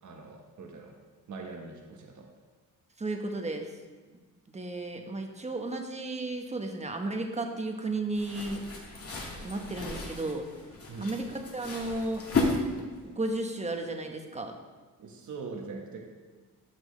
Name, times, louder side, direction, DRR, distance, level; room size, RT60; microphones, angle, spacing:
voice 1, 0.0-1.0 1.3-2.3 10.9-11.2 15.0-16.0, right 4 dB, 55° right, 1 dB, 1.3 m, -42 dB
voice 2, 3.0-3.7 4.5-8.6 9.4-10.5 11.0-12.2 13.0-14.5, right 2 dB, 20° right, 3 dB, 1.1 m, -34 dB
sound 1, 8.1-13.1, left 3 dB, 40° left, 2.0 m, -34 dB
13.5 x 6.1 x 3.3 m, 1.3 s
cardioid pair, 100°, 36 cm